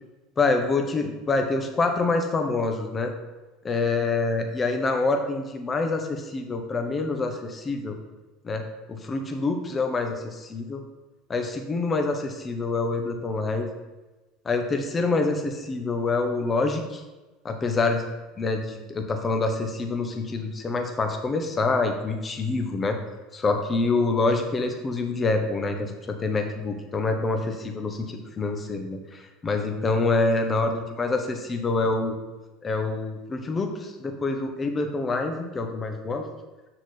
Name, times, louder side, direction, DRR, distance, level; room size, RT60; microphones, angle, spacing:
voice 1, 0.4-3.1 3.6-8.0 8.4-8.6 8.9-10.8 11.3-13.7 14.4-17.0 17.4-18.1 18.4-23.0 23.3-32.1 32.6-36.2, left 3 dB, 25° left, 5 dB, 1.2 m, -26 dB
6.4 x 6.0 x 4.3 m, 1.2 s
supercardioid pair, 95°, 0 cm